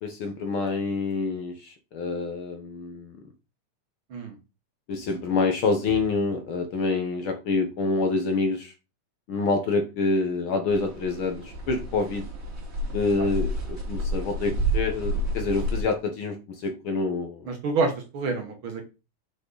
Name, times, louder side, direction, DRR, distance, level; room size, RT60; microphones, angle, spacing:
voice 1, 0.0-3.1 4.9-8.7 9.3-12.3 12.9-17.5, left 3 dB, 60° left, 5 dB, 1.5 m, -27 dB
sound 1, 10.7-15.8, right 1 dB, 25° right, 2.6 m, -30 dB
voice 2, 17.5-18.8, right 4 dB, 55° right, 4 dB, 1.8 m, -28 dB
6.3 x 5.9 x 3.9 m, 0.29 s
omnidirectional pair, 3.3 m